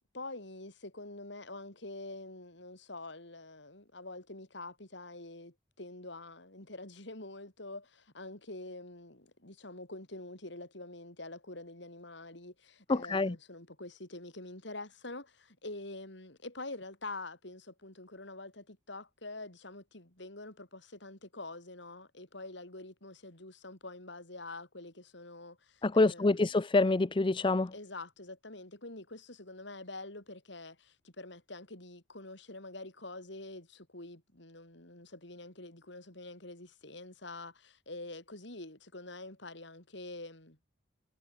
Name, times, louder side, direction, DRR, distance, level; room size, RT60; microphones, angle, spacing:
voice 1, 0.1-26.6 27.7-40.6, left 2 dB, 65° left, 5.4 m, -46 dB
voice 2, 12.9-13.3 25.8-27.7, left 2 dB, 25° left, 0.5 m, -26 dB
head